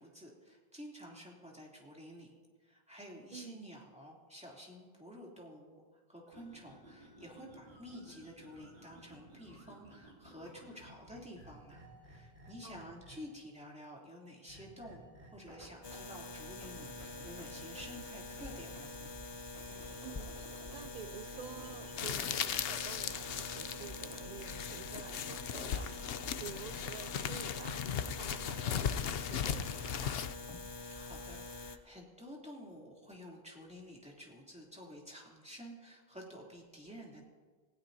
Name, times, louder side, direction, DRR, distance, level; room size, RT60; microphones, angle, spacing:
voice 1, 0.0-2.3 2.6-15.0 15.3-18.9 30.8-37.3, equal, 5° right, -3 dB, 3.0 m, -51 dB
voice 2, 3.3-3.7 12.6-12.9 20.0-30.2, right 8 dB, 50° right, 10 dB, 0.6 m, -50 dB
sound 1, 6.3-13.5 14.5-16.2 16.4-20.9 21.2-24.3, right 1 dB, 70° right, 4.4 m, -55 dB
sound 2, 15.8-31.8, left 3 dB, 30° left, 0.6 m, -46 dB
sound 3, 22.0-30.3, left 8 dB, 75° left, 0.8 m, -37 dB
27.5 x 16.0 x 2.8 m, 1.5 s
omnidirectional pair, 1.0 m